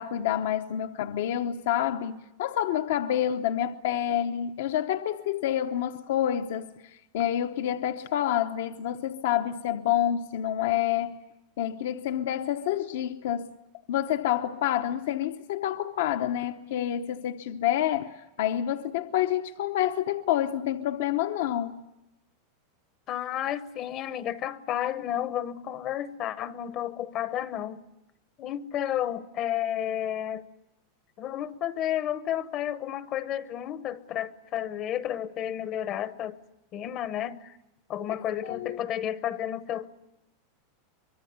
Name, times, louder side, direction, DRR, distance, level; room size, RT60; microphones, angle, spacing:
voice 1, 0.0-11.2 11.6-13.5 13.9-21.8 38.4-38.8, left 11 dB, 65° left, 0.9 m, -28 dB
voice 2, 23.1-27.8 28.4-30.4 31.2-36.4 36.7-37.6 37.9-39.9, left 11 dB, 30° left, 0.8 m, -31 dB
24.5 x 22.5 x 9.5 m
supercardioid pair, 165°, 0 cm